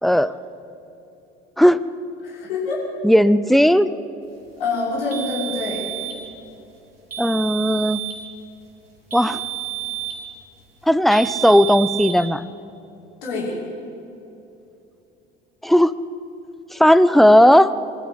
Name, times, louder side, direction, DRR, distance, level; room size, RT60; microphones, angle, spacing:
voice 1, 0.0-0.3 1.6-1.8 3.0-3.9 7.2-8.0 9.1-9.4 10.9-12.5 15.6-15.9 16.7-17.7, equal, ahead, 16 dB, 0.7 m, -15 dB
voice 2, 2.2-2.8 4.6-5.9 13.2-13.6, left 3 dB, 75° left, -6 dB, 6.3 m, -26 dB
sound 1, 5.1-6.2 7.1-8.2 9.1-10.3 11.1-12.2, right 12 dB, 85° right, 2.5 m, -30 dB
22.5 x 14.0 x 8.1 m, 2.8 s
figure-of-eight pair, 55°, 29 cm